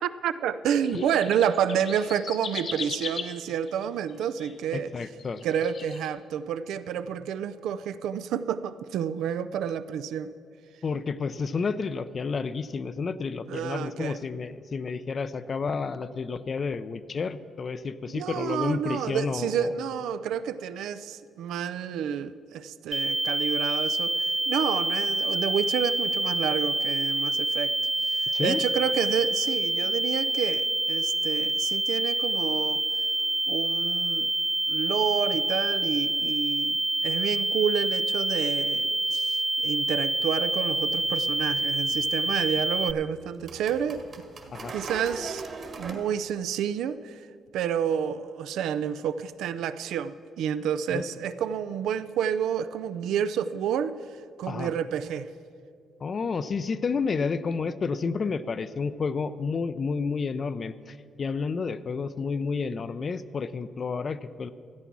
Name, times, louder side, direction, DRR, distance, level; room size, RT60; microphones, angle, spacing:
voice 1, 0.0-4.9 5.4-10.3 13.5-14.2 18.1-27.7 28.0-32.8 33.5-34.3 34.7-44.0 44.7-45.4 45.8-47.3 47.5-53.9 54.4-55.3, right 8 dB, 85° right, 13 dB, 0.4 m, -29 dB
sound 1, 0.8-4.5 5.0-6.1, left 5 dB, 60° left, 1.2 m, -38 dB
voice 2, 4.7-5.4 10.8-19.7 28.3-28.6 44.5-44.7 50.9-51.0 54.5-54.7 56.0-64.5, left 5 dB, 45° left, 14 dB, 0.5 m, -30 dB
sound 2, 22.9-42.9, right 2 dB, 15° right, 0.4 m, -27 dB
sound 3, 40.7-45.9, right 3 dB, 50° right, 1.6 m, -42 dB
13.5 x 8.2 x 6.1 m, 2.4 s
cardioid pair, 90°, 0 cm